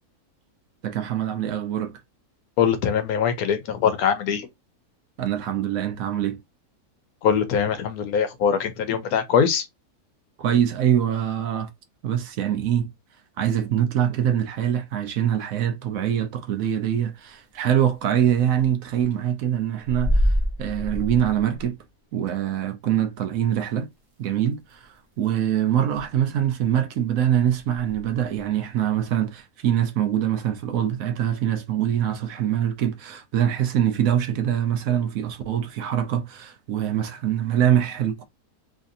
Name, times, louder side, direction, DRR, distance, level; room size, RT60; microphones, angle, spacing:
voice 1, 0.8-1.9 5.2-6.4 10.4-11.7 12.0-12.9 13.4-21.8 22.1-23.9 24.2-38.2, right 10 dB, 70° right, 1.0 m, -24 dB
voice 2, 2.6-4.5 7.2-9.7, left 7 dB, 75° left, 1.1 m, -22 dB
sound 1, 17.8-17.9 18.2-18.3 18.5-18.7 19.0-19.2 19.8-21.7 22.3-22.4 23.2-23.3 24.3-24.4 24.6-24.8 25.1-25.4 25.9-26.1 26.4-26.6 27.5-28.5, equal, 30° right, 0.7 m, -26 dB
3.2 x 2.6 x 2.5 m
omnidirectional pair, 1.6 m